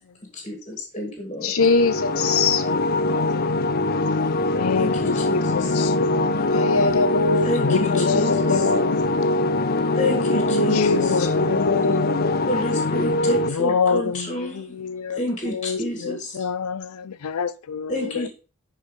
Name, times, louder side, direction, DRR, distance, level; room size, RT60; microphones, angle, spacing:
voice 1, 0.3-1.5 4.8-5.8 7.5-8.3 10.0-11.0 12.5-14.6 15.2-16.4 17.9-18.3, left 1 dB, 25° left, 1.8 m, -29 dB
voice 2, 1.4-2.6 6.5-9.0 10.3-12.6, left 3 dB, 70° left, 1.1 m, -23 dB
sound 1, 1.6-13.5, left 2 dB, 40° left, 0.6 m, -23 dB
voice 3, 3.1-3.4 4.5-6.3 7.6-8.1 8.5-8.6 10.8-11.6 13.5-15.2 15.5-18.3, left 6 dB, 90° left, 0.5 m, -27 dB
11.0 x 4.5 x 4.8 m
head